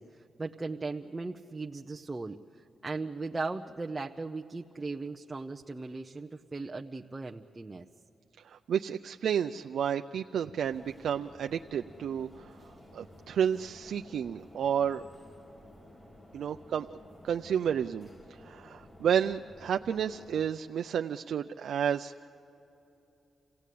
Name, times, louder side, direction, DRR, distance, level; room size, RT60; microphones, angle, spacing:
voice 1, 0.0-7.9, right 3 dB, 20° right, 2 dB, 0.7 m, -38 dB
voice 2, 8.4-12.5 12.9-15.0 16.3-16.9 17.2-22.1, right 8 dB, 80° right, 6 dB, 0.4 m, -31 dB
sound 1, 10.6-20.5, left 1 dB, 30° left, 2.2 m, -54 dB
28.0 x 17.0 x 8.5 m, 3.0 s
cardioid pair, 95°, 0 cm